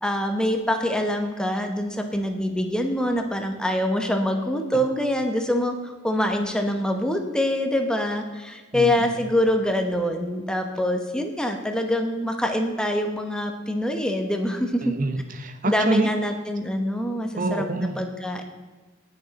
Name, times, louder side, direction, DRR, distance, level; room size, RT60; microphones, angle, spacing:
voice 1, 0.0-14.9 15.6-17.6 18.0-18.4, left 1 dB, 5° left, 4 dB, 0.9 m, -25 dB
voice 2, 8.7-9.1 14.8-16.1 17.4-18.0, right 2 dB, 40° right, 7 dB, 0.8 m, -27 dB
18.0 x 6.5 x 4.0 m, 1.4 s
head